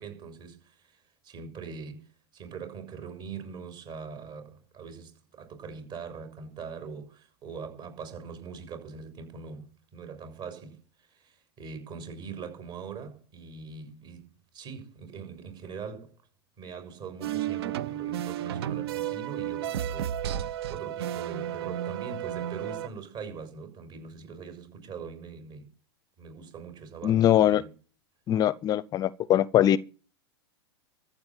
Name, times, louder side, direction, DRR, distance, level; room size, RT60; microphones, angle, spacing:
voice 1, 0.0-2.1 2.3-10.8 11.1-14.3 14.5-16.1 16.6-25.7 26.2-27.7, right 5 dB, 35° right, 6.8 m, -42 dB
sound 1, 17.2-22.9, right 11 dB, 65° right, 0.9 m, -32 dB
voice 2, 27.0-27.6 28.3-29.8, left 12 dB, 30° left, 0.6 m, -22 dB
14.0 x 8.7 x 7.4 m
hypercardioid pair, 130°, 14 cm